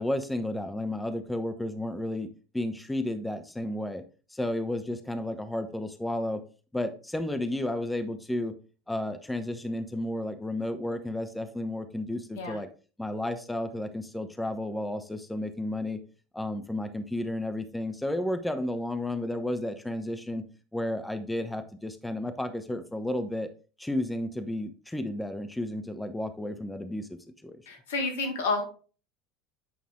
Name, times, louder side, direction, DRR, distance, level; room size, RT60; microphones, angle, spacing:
voice 1, 0.0-2.3 2.5-4.0 4.3-6.4 6.7-8.5 8.9-12.7 13.0-16.0 16.3-20.4 20.7-23.5 23.8-27.6, left 1 dB, 5° left, 8 dB, 1.0 m, -32 dB
voice 2, 27.7-28.6, left 3 dB, 70° left, 4 dB, 1.8 m, -29 dB
8.8 x 5.5 x 3.7 m, 0.36 s
figure-of-eight pair, 75°, 0 cm